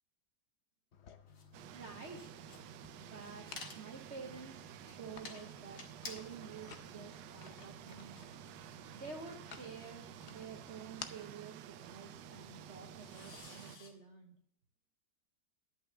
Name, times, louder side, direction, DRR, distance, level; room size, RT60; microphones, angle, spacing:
sound 1, 0.9-13.4, left 7 dB, 55° left, 0.8 m, -56 dB
sound 2, 1.3-13.9, left 3 dB, 70° left, 2.3 m, -56 dB
sound 3, 1.5-13.8, right 13 dB, 80° right, 1.2 m, -52 dB
voice 1, 1.7-2.3 3.0-3.5 3.7-8.3 8.9-14.4, right 5 dB, 45° right, 2 dB, 1.0 m, -50 dB
11.0 x 6.0 x 6.7 m, 0.65 s
omnidirectional pair, 1.9 m